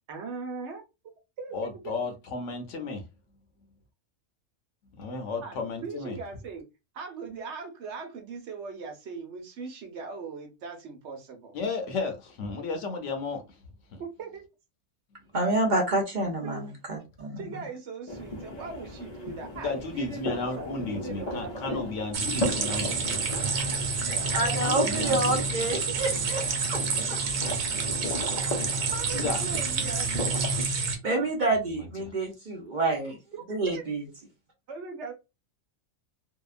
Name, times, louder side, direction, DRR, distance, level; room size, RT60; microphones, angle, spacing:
voice 1, 0.1-0.8 1.4-1.6 5.4-5.5 5.8-6.6 6.9-11.5 14.0-14.4 16.4-16.6 17.4-21.8 25.9-26.0 28.9-30.5 31.0-31.3 33.3-33.8 34.7-35.1, right 4 dB, 65° right, 0.9 m, -39 dB
voice 2, 1.5-3.0 5.0-6.2 11.5-13.4 13.9-14.0 19.6-23.2 24.6-25.4 29.1-29.4 31.8-32.2, left 3 dB, 75° left, 1.0 m, -33 dB
voice 3, 15.3-17.4 24.0-26.4 26.7-26.8 27.1-27.2 27.5-27.6 31.0-33.2 33.5-34.0, right 2 dB, 45° right, 0.7 m, -28 dB
sound 1, 18.1-30.6, left 1 dB, 45° left, 0.6 m, -37 dB
sound 2, 22.1-31.0, right 4 dB, 90° right, 1.1 m, -29 dB
2.8 x 2.2 x 2.4 m
omnidirectional pair, 1.3 m